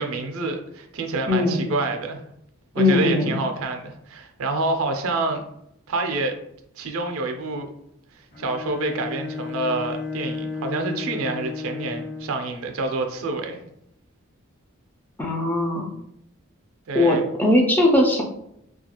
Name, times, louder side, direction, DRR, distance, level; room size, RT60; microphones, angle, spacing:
voice 1, 0.0-2.2 2.7-5.4 5.9-6.4 6.8-7.7 8.1-13.6 16.9-17.2, right 2 dB, 75° right, 5 dB, 0.4 m, -27 dB
voice 2, 1.3-1.6 2.8-3.4 15.2-15.9 16.9-18.2, left 1 dB, 10° left, -1 dB, 0.3 m, -20 dB
Bowed string instrument, 8.3-12.5, left 4 dB, 35° left, 1.3 m, -33 dB
2.3 x 2.3 x 2.8 m, 0.76 s
head